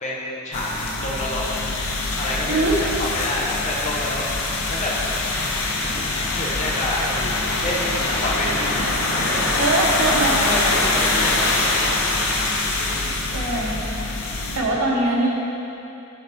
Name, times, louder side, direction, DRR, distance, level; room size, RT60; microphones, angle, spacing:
voice 1, 0.0-1.4 2.2-4.9 5.8-6.0 6.3-8.8 9.1-9.5 10.4-13.8 14.5-15.0, left 1 dB, 35° left, -4 dB, 1.1 m, -29 dB
sound 1, 0.5-14.6, left 2 dB, 75° left, 0.8 m, -24 dB
voice 2, 2.5-2.8 9.6-10.4 13.3-13.9 14.5-15.3, right 2 dB, 90° right, -2 dB, 1.1 m, -22 dB
10.5 x 4.2 x 3.5 m, 2.9 s
head